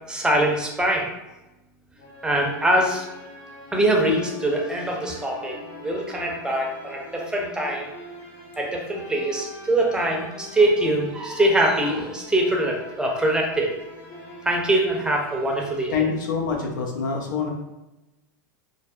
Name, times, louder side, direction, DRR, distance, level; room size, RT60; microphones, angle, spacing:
voice 1, 0.1-1.1 2.2-3.0 3.7-7.9 8.6-13.7 14.4-15.9, right 1 dB, 5° right, 0 dB, 0.6 m, -23 dB
sound 1, 2.0-15.8, left 1 dB, 50° left, 0.8 m, -43 dB
voice 2, 15.9-17.5, left 5 dB, 75° left, 1 dB, 0.6 m, -25 dB
2.6 x 2.0 x 2.4 m, 1.0 s
hypercardioid pair, 100°, 11 cm